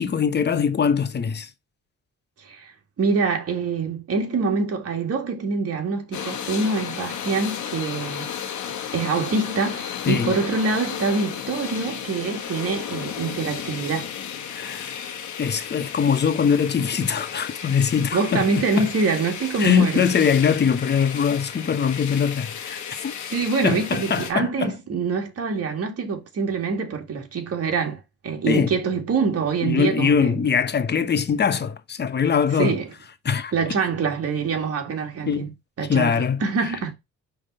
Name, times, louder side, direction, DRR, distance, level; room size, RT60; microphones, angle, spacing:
voice 1, 0.0-1.5 10.1-10.3 14.5-14.9 15.4-18.5 18.8-18.9 19.6-23.2 23.6-24.7 28.5-28.7 29.6-32.8 33.2-33.5 35.3-35.5 35.9-36.7, left 6 dB, 35° left, 0.9 m, -22 dB
voice 2, 3.0-8.3 8.9-14.1 18.1-20.0 23.3-30.5 32.6-32.9 33.5-35.5 35.8-36.9, right 4 dB, 55° right, 2.1 m, -25 dB
sound 1, 6.1-24.3, left 8 dB, 75° left, 1.4 m, -34 dB
5.2 x 3.6 x 5.5 m
cardioid pair, 90°, 30 cm